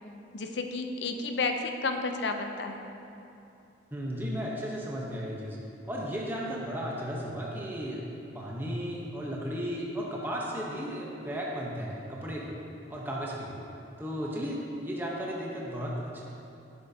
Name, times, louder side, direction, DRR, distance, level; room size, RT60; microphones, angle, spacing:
voice 1, 0.3-2.8, left 3 dB, 65° left, 5 dB, 0.6 m, -31 dB
voice 2, 3.9-5.6 5.9-8.0 8.3-12.5 12.9-13.6 14.0-16.2, equal, 10° right, -3 dB, 0.8 m, -34 dB
11.0 x 7.5 x 2.7 m, 2.8 s
head